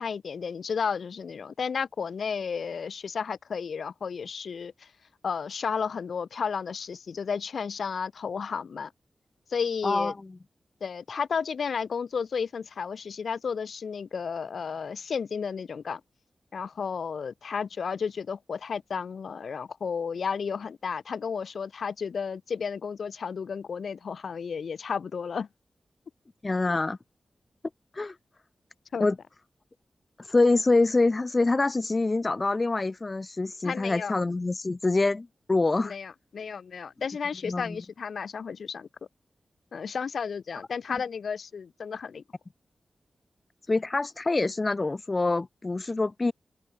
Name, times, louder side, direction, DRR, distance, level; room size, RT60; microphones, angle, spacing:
voice 1, 0.0-4.9 5.2-8.9 9.5-10.1 10.8-16.0 16.5-25.5 28.9-29.1 33.6-34.1 35.8-38.9 39.7-42.2, left 6 dB, 80° left, 1.1 m, -32 dB
voice 2, 9.8-10.2 26.4-27.0 27.9-28.1 29.0-29.2 30.2-35.9 37.4-37.8 40.9-41.0 43.7-46.3, left 3 dB, 35° left, 0.7 m, -25 dB
open air
wide cardioid pair, 75°, 0 cm